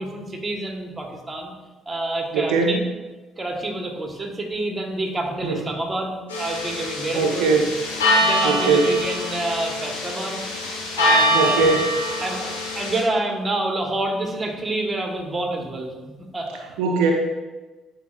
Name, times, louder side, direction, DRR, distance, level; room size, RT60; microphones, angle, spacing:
voice 1, 0.0-1.5 1.8-2.8 3.4-7.5 8.2-10.4 11.0-11.7 12.2-16.6, right 2 dB, 25° right, 2 dB, 1.4 m, -28 dB
voice 2, 2.3-2.8 5.4-5.6 7.1-7.7 8.4-8.8 11.3-11.8 16.8-17.1, right 4 dB, 75° right, 1 dB, 0.5 m, -20 dB
sound 1, 6.3-13.0, equal, 90° left, 1.3 m, -24 dB
10.0 x 4.4 x 2.5 m, 1.2 s
hypercardioid pair, 50°, 0 cm